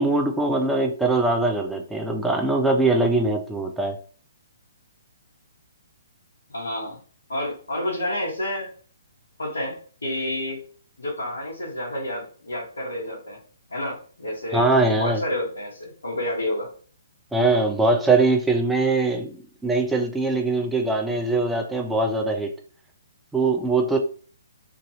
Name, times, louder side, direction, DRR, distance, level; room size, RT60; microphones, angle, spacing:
voice 1, 0.0-4.0 14.5-15.2 17.3-19.3 19.6-22.5 23.3-24.0, right 2 dB, 5° right, 3 dB, 0.5 m, -22 dB
voice 2, 6.5-7.0 7.3-8.7 9.4-10.6 11.0-13.4 13.7-14.7 14.9-16.7, left 1 dB, 80° left, -7 dB, 1.3 m, -29 dB
2.9 x 2.6 x 2.7 m, 0.42 s
figure-of-eight pair, 135°, 0 cm